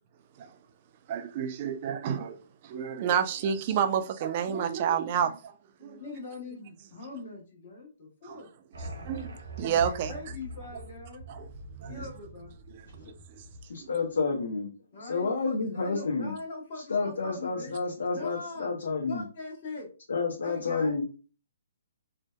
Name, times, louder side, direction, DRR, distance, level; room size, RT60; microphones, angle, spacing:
voice 1, 1.1-2.4 2.6-5.5 5.8-6.0 8.2-8.4 9.0-10.1 11.3-11.5 11.8-12.0 12.7-12.8 13.8-13.9, right 8 dB, 40° right, 0.3 m, -29 dB
voice 2, 5.8-8.5 10.1-11.2 11.8-12.5 14.9-17.7 18.1-18.7 19.1-19.9 20.4-21.0, left 3 dB, 50° left, 1.0 m, -42 dB
sound 1, 8.7-14.0, right 1 dB, 75° right, 0.8 m, -43 dB
voice 3, 13.7-14.7 15.0-16.3 16.9-19.2 20.1-21.0, left 4 dB, 75° left, 0.6 m, -30 dB
2.6 x 2.1 x 2.2 m
hypercardioid pair, 145°, 0 cm